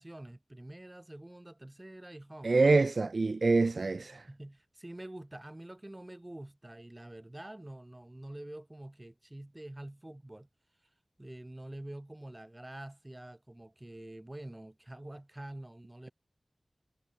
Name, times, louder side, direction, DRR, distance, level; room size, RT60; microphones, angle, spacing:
voice 1, 0.0-2.8 3.9-10.5 11.2-16.1, right 1 dB, 25° right, 4.6 m, -47 dB
voice 2, 2.4-4.2, right 3 dB, 70° right, 1.1 m, -25 dB
wide cardioid pair, 60°, 0 cm